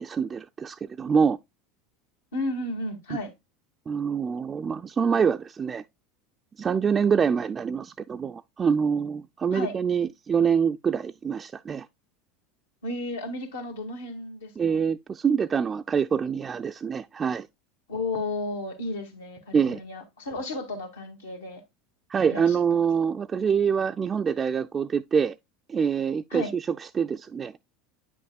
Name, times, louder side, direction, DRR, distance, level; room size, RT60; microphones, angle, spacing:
voice 1, 0.0-1.4 3.9-5.8 6.6-11.9 14.6-17.5 19.5-19.8 22.1-25.3 25.7-27.5, right 6 dB, 30° right, 0.3 m, -25 dB
voice 2, 2.3-3.3 9.5-9.8 12.8-14.8 17.9-21.6 22.3-22.6 26.3-26.5, left 2 dB, 85° left, 1.9 m, -33 dB
9.1 x 6.1 x 2.3 m
hypercardioid pair, 85°, 0 cm